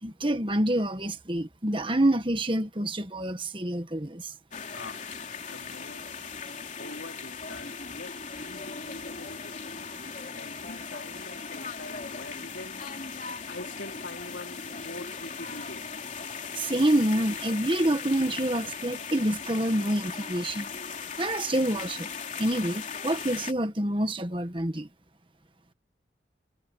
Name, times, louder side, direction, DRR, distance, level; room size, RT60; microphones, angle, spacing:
voice 1, 0.0-4.3 16.5-20.7 21.2-22.1 22.4-24.9, right 1 dB, 25° right, 1.6 m, -27 dB
sound 1, 4.5-23.5, left 5 dB, 40° left, 3.5 m, -38 dB
voice 2, 4.7-5.2 5.5-6.2 6.8-12.9 13.5-16.0, left 2 dB, 80° left, 3.7 m, -44 dB
head